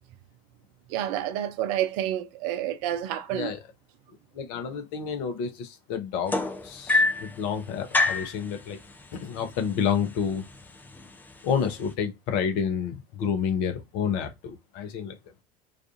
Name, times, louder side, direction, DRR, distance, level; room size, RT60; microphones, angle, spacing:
voice 1, 0.9-3.5, right 11 dB, 55° right, 0.5 m, -29 dB
voice 2, 3.3-3.7 4.3-6.4 6.6-8.8 9.1-10.5 11.4-15.3, left 7 dB, 55° left, 0.7 m, -29 dB
sound 1, 6.3-7.3 7.9-8.3 9.4-9.5 9.9-10.2 11.0-11.1, left 3 dB, 10° left, 0.4 m, -24 dB
2.5 x 2.3 x 2.5 m
figure-of-eight pair, 70°, 20 cm